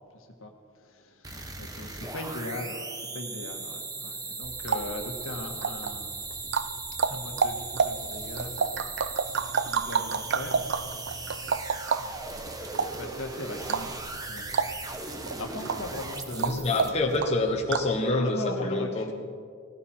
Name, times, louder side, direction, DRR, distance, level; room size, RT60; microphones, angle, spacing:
voice 1, 0.1-6.3 7.1-8.9 9.6-11.6 12.0-14.8 15.3-16.9 18.1-19.1, left 1 dB, 70° left, 3 dB, 1.7 m, -40 dB
sound 1, 1.2-17.2, right 3 dB, 15° right, 1.1 m, -38 dB
sound 2, 4.4-18.0, right 6 dB, 55° right, 0.5 m, -31 dB
voice 2, 16.3-19.1, left 2 dB, 30° left, 1 dB, 1.3 m, -27 dB
18.0 x 16.0 x 4.5 m, 2.1 s
head